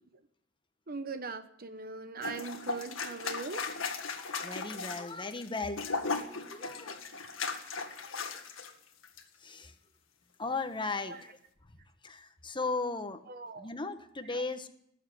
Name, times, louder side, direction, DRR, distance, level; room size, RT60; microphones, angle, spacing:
voice 1, 0.9-3.7 11.1-11.2 13.3-13.7 14.2-14.4, right 4 dB, 50° right, 9 dB, 1.0 m, -40 dB
sound 1, 2.2-8.7 9.0-9.2, left 4 dB, 90° left, 1.7 m, -37 dB
voice 2, 4.4-5.8 6.5-7.0 9.4-9.7 10.4-11.3 12.0-13.2 13.6-14.7, left 3 dB, 25° left, 9 dB, 1.2 m, -36 dB
19.5 x 7.5 x 9.9 m, 0.72 s
head